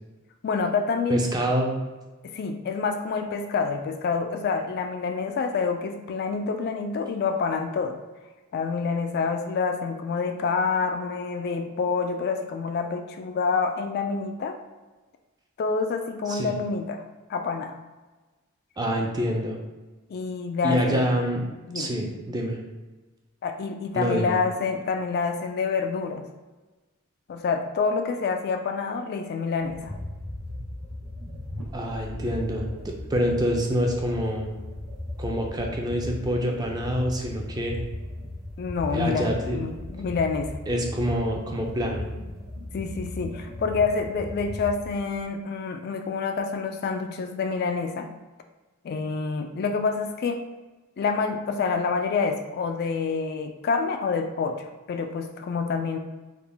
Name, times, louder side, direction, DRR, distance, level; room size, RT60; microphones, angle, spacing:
voice 1, 0.4-1.3 2.2-8.0 8.5-14.6 15.6-17.0 17.3-17.8 20.1-21.1 21.7-21.9 23.4-26.3 27.3-30.0 38.6-40.5 42.7-48.1 48.8-50.4 51.0-56.0, left 5 dB, 50° left, 6 dB, 0.3 m, -27 dB
voice 2, 1.1-1.7 16.3-16.5 18.8-19.6 20.6-21.4 21.7-22.6 23.9-24.3 31.7-34.5 35.2-37.8 38.9-39.6 40.7-42.1, equal, 20° right, 1 dB, 0.5 m, -26 dB
sound 1, 29.6-45.2, left 1 dB, 75° right, 0.9 m, -37 dB
3.7 x 2.2 x 3.4 m, 1.2 s
head